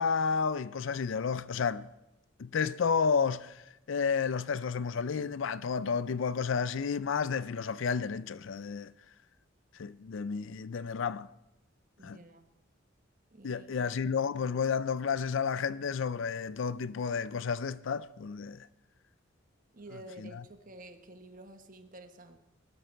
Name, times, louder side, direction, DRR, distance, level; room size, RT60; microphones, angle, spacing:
voice 1, 0.0-1.9 2.4-3.6 3.9-8.9 9.8-11.3 12.0-12.2 13.4-18.7 20.3-20.4, left 6 dB, 65° left, 0.4 m, -31 dB
voice 2, 12.0-12.5 13.3-13.9 19.7-22.4, right 1 dB, 40° right, 1.2 m, -50 dB
20.5 x 12.5 x 4.5 m
head